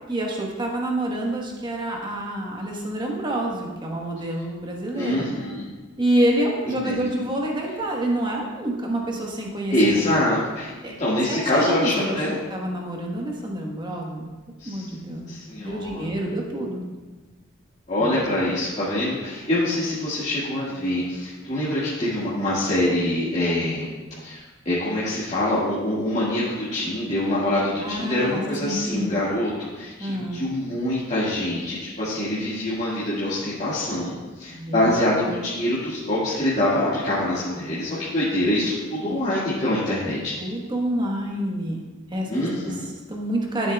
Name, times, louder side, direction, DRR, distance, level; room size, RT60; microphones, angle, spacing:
voice 1, 0.1-5.3 6.0-10.1 10.8-10.9 11.3-14.3 14.6-15.3 15.6-16.8 18.0-18.3 27.8-29.2 30.0-30.5 34.5-35.2 39.0-39.2 40.4-41.8 42.1-43.7, right 1 dB, 20° right, 0 dB, 1.2 m, -27 dB
voice 2, 4.9-5.7 6.8-7.1 9.7-10.7 11.0-12.4 14.6-14.9 15.3-16.1 17.9-23.9 24.2-40.4 42.3-42.9, left 1 dB, 35° left, -11 dB, 1.8 m, -25 dB
13.0 x 7.4 x 2.3 m, 1.2 s
head